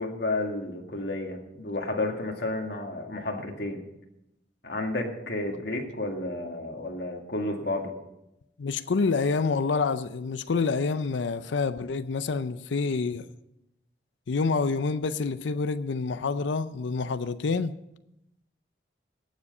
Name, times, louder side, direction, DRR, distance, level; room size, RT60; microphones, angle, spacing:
voice 1, 0.0-3.8 4.6-7.9, left 2 dB, 60° left, 1.9 m, -31 dB
voice 2, 8.6-13.3 14.3-17.7, left 4 dB, 80° left, 0.5 m, -27 dB
18.0 x 7.4 x 5.5 m
head